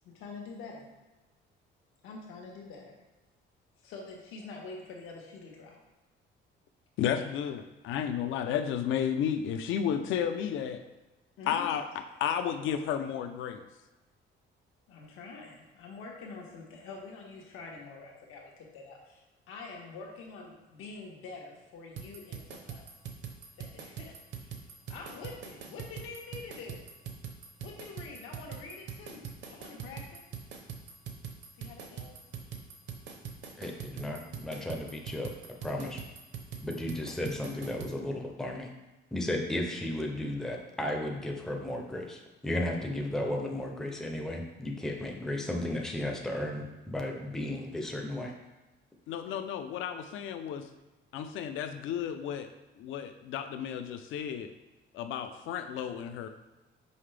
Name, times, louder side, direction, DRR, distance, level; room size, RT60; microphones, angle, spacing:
voice 1, 0.0-0.9 2.0-2.9 3.8-5.8 7.1-7.3 11.4-11.7 14.9-22.9 23.6-24.2 24.4-24.6 24.9-26.9 27.6-30.2 31.5-32.2, left 4 dB, 85° left, -1 dB, 1.4 m, -46 dB
voice 2, 7.0-10.8 11.5-11.8 12.2-13.6 49.1-50.7 51.1-52.5 52.8-54.5 54.9-56.3, left 8 dB, 70° left, 8 dB, 0.6 m, -32 dB
sound 1, 22.0-37.9, right 7 dB, 60° right, 0.8 m, -43 dB
voice 3, 33.6-35.3 35.6-36.0 36.6-38.7 39.1-48.3, left 1 dB, ahead, 1 dB, 0.5 m, -34 dB
5.6 x 5.6 x 3.3 m, 1.1 s
cardioid pair, 180°, 21 cm